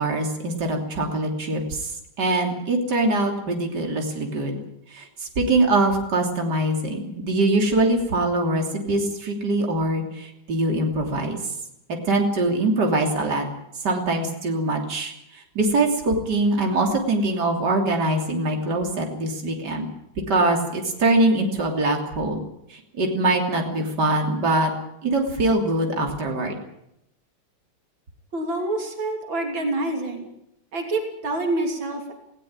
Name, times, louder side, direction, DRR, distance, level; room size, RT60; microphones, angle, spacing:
voice 1, 0.0-1.9 2.2-4.6 4.9-11.4 12.1-13.5 13.8-19.9 20.3-22.4 22.7-24.7 25.0-26.6, right 2 dB, 60° right, 2 dB, 3.7 m, -23 dB
voice 2, 28.3-30.3 30.7-32.1, right 2 dB, 85° right, 3 dB, 4.0 m, -27 dB
20.0 x 17.0 x 8.9 m, 0.81 s
omnidirectional pair, 2.1 m